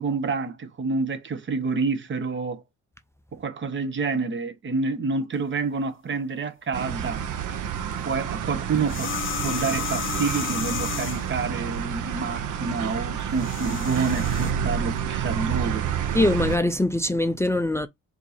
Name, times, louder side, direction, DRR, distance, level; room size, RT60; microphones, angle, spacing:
voice 1, 0.0-2.6 3.3-7.2 8.0-9.1 9.4-15.9, right 4 dB, 40° right, 1.0 m, -28 dB
sound 1, 6.7-16.6, right 9 dB, 80° right, 0.8 m, -29 dB
sound 2, 8.8-11.4 13.2-14.5, left 8 dB, 40° left, 0.7 m, -32 dB
voice 2, 16.1-17.9, left 1 dB, 10° left, 0.4 m, -22 dB
4.4 x 2.7 x 4.2 m
cardioid pair, 90°, 30 cm